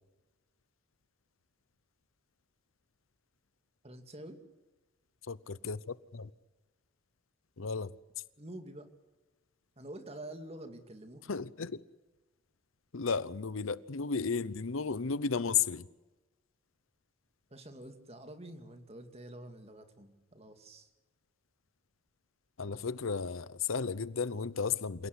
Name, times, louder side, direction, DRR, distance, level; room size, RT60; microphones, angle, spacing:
voice 1, 3.8-4.4 8.4-8.9 9.8-11.3 17.5-20.9, right 1 dB, 30° right, 2.4 m, -47 dB
voice 2, 5.3-6.3 7.6-7.9 11.3-11.8 12.9-15.9 22.6-25.1, left 5 dB, 75° left, 0.8 m, -34 dB
27.5 x 17.5 x 8.2 m
head